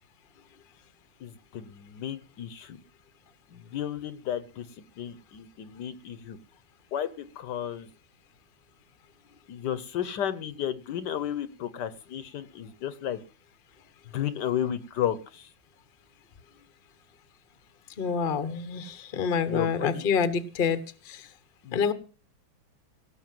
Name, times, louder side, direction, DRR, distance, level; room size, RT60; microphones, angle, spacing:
voice 1, 1.2-2.8 3.5-4.7 5.0-6.4 6.9-7.9 9.5-13.2 14.1-15.5 19.5-20.0 21.6-21.9, left 10 dB, 65° left, 14 dB, 1.3 m, -33 dB
voice 2, 18.0-20.8 21.0-21.3 21.7-21.9, left 6 dB, 40° left, 12 dB, 0.9 m, -27 dB
17.5 x 6.7 x 7.5 m, 0.38 s
omnidirectional pair, 2.2 m